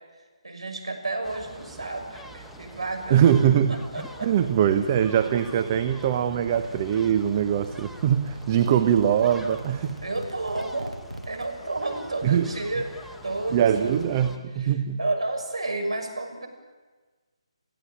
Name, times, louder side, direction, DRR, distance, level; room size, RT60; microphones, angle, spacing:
voice 1, 0.4-3.3 3.7-4.3 10.0-10.9 11.3-12.9 13.2-14.7 15.0-16.5, right 2 dB, 70° right, 4 dB, 6.4 m, -31 dB
sound 1, 1.2-14.4, right 1 dB, 5° left, 1.2 m, -45 dB
voice 2, 3.1-3.8 4.2-10.0 12.2-12.5 13.5-15.0, right 9 dB, 30° right, 7 dB, 1.1 m, -22 dB
sound 2, 4.9-11.5, right 1 dB, 90° right, 1.6 m, -43 dB
29.5 x 16.5 x 8.9 m, 1.3 s
figure-of-eight pair, 145°, 3 cm